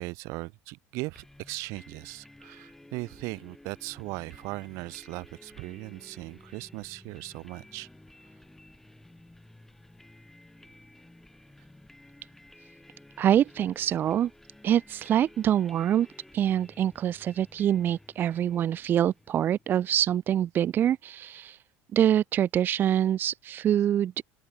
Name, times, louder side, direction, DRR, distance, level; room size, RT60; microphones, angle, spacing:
voice 1, 0.0-7.9, right 24 dB, 65° right, 1.6 m, -38 dB
sound 1, 1.1-19.8, left 1 dB, 5° left, 5.1 m, -54 dB
voice 2, 13.2-14.3 14.6-16.1 16.3-21.6 21.9-24.2, right 10 dB, 40° right, 0.8 m, -25 dB
open air
supercardioid pair, 125°, 5 cm